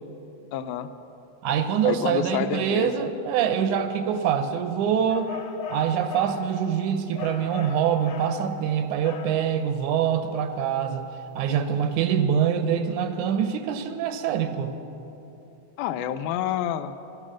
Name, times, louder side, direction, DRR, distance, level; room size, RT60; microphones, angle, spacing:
voice 1, 0.5-0.9 1.9-2.9 15.8-17.0, left 10 dB, 90° left, 10 dB, 2.0 m, -28 dB
voice 2, 1.4-5.3 5.7-11.1 11.4-14.7, right 8 dB, 85° right, 9 dB, 2.2 m, -25 dB
sound 1, 5.1-6.4 7.2-8.4 9.0-9.4, left 6 dB, 70° left, 2.0 m, -38 dB
13.0 x 11.0 x 6.2 m, 2.9 s
omnidirectional pair, 3.4 m